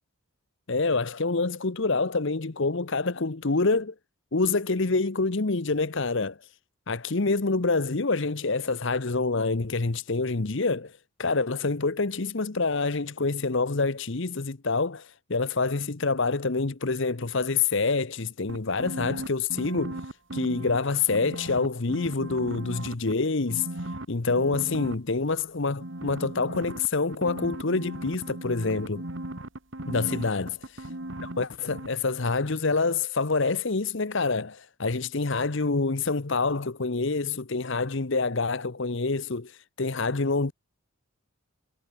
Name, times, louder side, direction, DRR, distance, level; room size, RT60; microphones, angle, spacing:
voice 1, 0.7-3.9 4.3-6.4 6.9-10.9 11.2-20.0 20.3-23.7 24.1-29.0 29.9-30.5 31.4-40.5, left 3 dB, 55° left, 0.9 m, -27 dB
sound 1, 18.5-20.8 21.1-23.1 23.5-24.9 25.8-31.4 31.7-31.9, right 1 dB, 55° right, 2.2 m, -37 dB
head